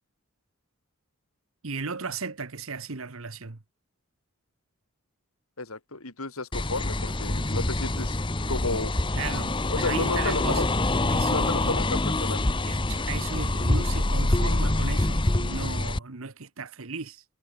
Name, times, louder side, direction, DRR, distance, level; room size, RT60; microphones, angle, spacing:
voice 1, 1.6-3.6 9.1-10.7 11.1-11.8 12.7-17.2, right 4 dB, 75° right, 1.3 m, -35 dB
voice 2, 5.6-8.2 8.5-8.9 9.7-10.7 11.3-12.6, left 3 dB, 85° left, 3.9 m, -32 dB
sound 1, 6.5-16.0, left 2 dB, 20° left, 1.0 m, -26 dB
head